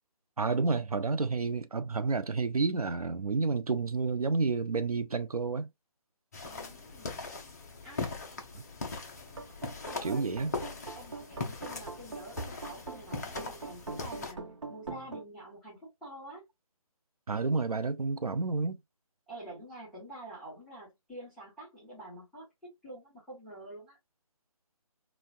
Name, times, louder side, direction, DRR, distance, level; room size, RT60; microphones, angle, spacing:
voice 1, 0.4-5.7 8.5-8.6 10.0-10.6 17.3-18.8, right 4 dB, 80° right, 0.5 m, -30 dB
sound 1, 6.3-14.3, left 3 dB, 30° left, 0.6 m, -40 dB
voice 2, 6.4-7.2 7.8-8.2 9.9-14.4 14.7-16.4 19.3-22.5 22.8-24.0, right 1 dB, ahead, 1.1 m, -47 dB
sound 2, 9.3-15.2, right 3 dB, 55° right, 1.0 m, -42 dB
3.9 x 2.3 x 2.3 m
figure-of-eight pair, 150°, 19 cm